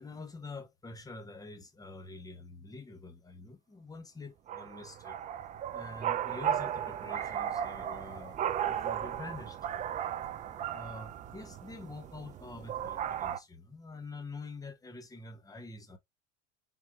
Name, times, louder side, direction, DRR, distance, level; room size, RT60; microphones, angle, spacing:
voice 1, 0.0-5.2 5.7-8.4 8.6-9.6 10.7-16.0, left 3 dB, 10° left, 0.8 m, -46 dB
sound 1, 4.5-13.4, right 10 dB, 20° right, 0.3 m, -36 dB
3.7 x 2.6 x 3.0 m
hypercardioid pair, 90°, 38 cm